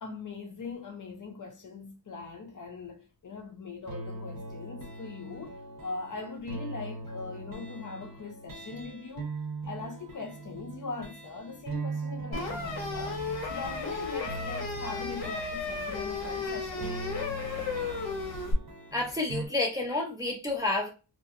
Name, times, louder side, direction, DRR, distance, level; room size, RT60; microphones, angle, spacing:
voice 1, 0.0-9.4 9.7-13.2 13.5-16.9, left 4 dB, 45° left, 0.6 m, -41 dB
sound 1, 3.9-19.5, right 3 dB, 45° right, 0.7 m, -41 dB
sound 2, 12.3-18.5, left 4 dB, 75° left, 1.1 m, -34 dB
voice 2, 18.9-20.9, left 2 dB, 10° right, 0.4 m, -29 dB
2.8 x 2.5 x 2.5 m
wide cardioid pair, 175°, 46 cm